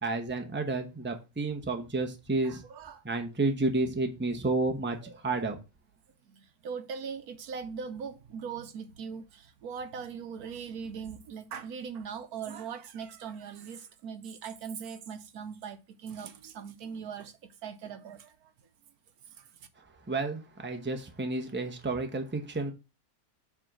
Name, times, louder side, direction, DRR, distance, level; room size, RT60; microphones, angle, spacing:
voice 1, 0.0-2.6 3.0-5.0 5.2-5.6 20.1-22.7, right 2 dB, 10° right, 0.9 m, -31 dB
voice 2, 2.4-3.0 5.0-5.2 6.3-17.3 17.6-18.5 19.4-19.5, right 6 dB, 70° right, 1.2 m, -40 dB
7.5 x 3.6 x 6.1 m
omnidirectional pair, 1.7 m